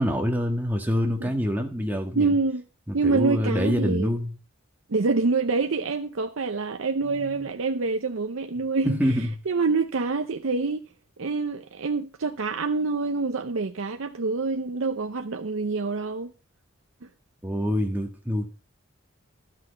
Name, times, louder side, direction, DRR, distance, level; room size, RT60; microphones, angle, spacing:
voice 1, 0.0-2.3 2.9-4.3 7.0-7.5 8.8-9.3 17.4-18.5, equal, 10° right, 1.5 m, -26 dB
voice 2, 2.2-2.6 2.9-4.1 4.9-9.0 9.5-10.8 11.2-16.3, right 4 dB, 75° right, 0.7 m, -26 dB
12.5 x 6.1 x 6.8 m
head